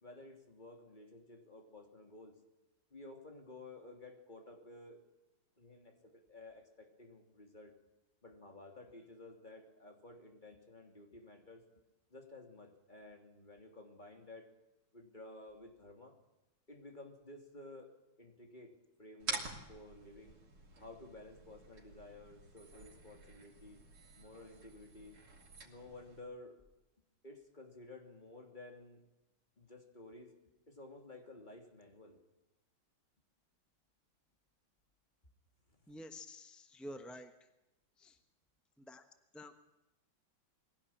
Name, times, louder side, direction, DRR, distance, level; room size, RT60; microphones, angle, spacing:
voice 1, 0.0-2.4 2.9-5.0 5.6-7.7 8.2-11.6 12.1-14.5 14.9-16.1 16.7-17.9 18.2-20.4 20.8-23.8 24.2-25.2 25.6-26.5 27.2-29.0 29.6-30.3 30.7-32.2 35.7-35.9, left 2 dB, 20° left, 3 dB, 3.1 m, -54 dB
sound 1, 19.2-26.2, right 3 dB, 85° right, 3.9 m, -48 dB
voice 2, 35.9-37.3 38.0-38.2 38.8-39.0 39.3-39.5, left 1 dB, ahead, 7 dB, 0.6 m, -49 dB
22.0 x 17.0 x 8.7 m, 0.98 s
omnidirectional pair, 2.2 m